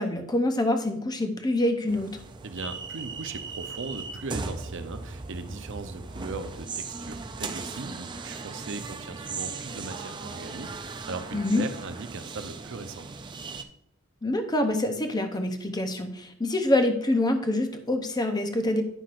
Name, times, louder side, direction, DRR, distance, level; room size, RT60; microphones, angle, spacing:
voice 1, 0.0-2.2 11.3-11.6 14.2-18.8, left 1 dB, 20° left, 6 dB, 0.7 m, -26 dB
sound 1, 1.9-13.6, right 4 dB, 20° right, 0.4 m, -38 dB
voice 2, 2.4-13.1, right 3 dB, 60° right, 8 dB, 0.7 m, -38 dB
9.9 x 5.8 x 2.5 m, 0.74 s
head